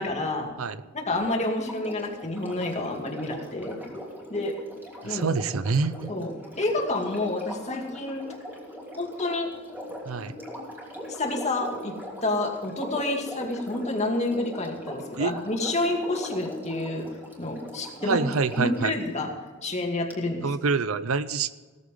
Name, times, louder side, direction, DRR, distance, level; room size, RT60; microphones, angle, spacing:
voice 1, 0.0-0.5 0.9-3.8 4.3-4.6 5.0-5.3 6.1-6.3 6.6-8.3 9.0-9.5 11.1-11.9 12.2-17.1 17.4-18.2 18.6-19.3 19.6-20.4, left 2 dB, 35° left, 1 dB, 2.4 m, -29 dB
Sink (filling or washing), 1.1-18.9 20.1-20.2, equal, 10° right, 3.1 m, -40 dB
voice 2, 5.0-6.1 10.1-10.4 15.2-15.3 18.0-18.9 20.4-21.7, right 4 dB, 90° right, 15 dB, 0.6 m, -26 dB
17.0 x 14.0 x 3.8 m, 1.4 s
head